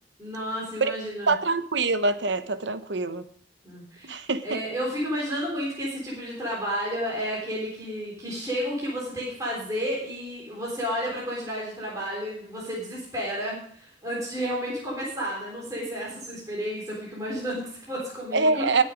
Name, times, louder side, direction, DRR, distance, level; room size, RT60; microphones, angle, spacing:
voice 1, 0.2-1.3 3.6-18.8, equal, 20° right, -5 dB, 3.6 m, -32 dB
voice 2, 1.3-3.3 4.1-4.6 18.3-18.8, right 3 dB, 70° right, 11 dB, 0.9 m, -24 dB
20.0 x 6.6 x 5.1 m, 0.63 s
head